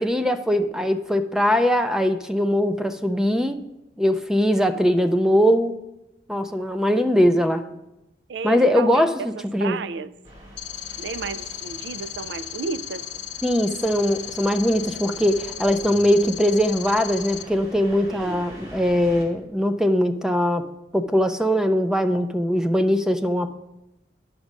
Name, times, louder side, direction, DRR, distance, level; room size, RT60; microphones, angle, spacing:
voice 1, 0.0-3.6 4.0-5.8 6.3-7.6 8.4-9.8 13.4-23.5, equal, 5° right, 0.3 m, -21 dB
voice 2, 8.3-10.1 11.0-13.1 18.1-18.5, right 5 dB, 85° right, 0.4 m, -33 dB
sound 1, 10.2-19.2, right 1 dB, 40° right, 2.3 m, -44 dB
sound 2, 10.6-17.4, left 11 dB, 75° left, 0.7 m, -36 dB
9.9 x 6.1 x 5.3 m
head